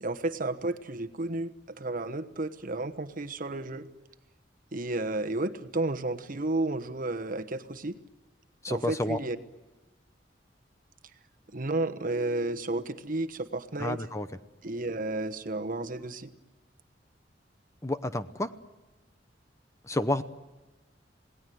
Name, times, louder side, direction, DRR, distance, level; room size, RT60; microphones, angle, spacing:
voice 1, 0.0-3.9 4.7-8.0 8.7-9.4 11.5-14.0 14.6-16.3, right 2 dB, 50° right, 8 dB, 1.2 m, -32 dB
voice 2, 8.6-9.2 13.8-14.3 17.8-18.5 19.8-20.2, left 1 dB, 15° left, 10 dB, 0.8 m, -30 dB
27.5 x 18.5 x 9.4 m, 1.1 s
head